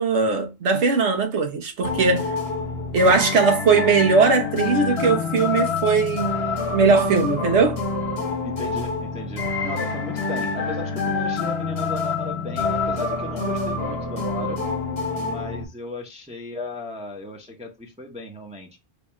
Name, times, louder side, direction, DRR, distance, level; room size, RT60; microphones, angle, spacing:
voice 1, 0.0-2.3 2.9-6.3 6.7-7.8, right 4 dB, 90° right, 1.2 m, -19 dB
sound 1, 1.8-15.6, left 4 dB, 65° left, 1.2 m, -26 dB
voice 2, 8.4-14.6 15.2-18.7, left 2 dB, 10° right, 0.6 m, -36 dB
3.3 x 2.3 x 4.0 m
omnidirectional pair, 1.1 m